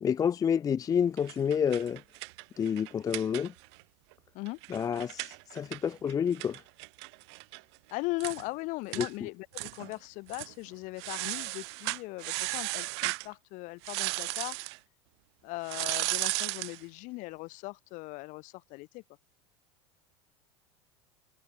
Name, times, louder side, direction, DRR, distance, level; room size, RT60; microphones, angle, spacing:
voice 1, 0.0-2.0 2.6-3.5 4.7-6.6 9.0-9.3, left 7 dB, 25° left, 0.5 m, -29 dB
sound 1, 1.2-3.8 4.1-4.2 4.5-7.6 7.9-8.0 8.2-8.4 8.9-9.1 9.5-10.0 10.3-10.5 11.0-13.3 13.8-14.8 15.6-16.8, right 27 dB, 65° right, 3.9 m, -35 dB
voice 2, 7.9-14.6 15.4-19.0, left 23 dB, 60° left, 7.0 m, -39 dB
hypercardioid pair, 90°, 15 cm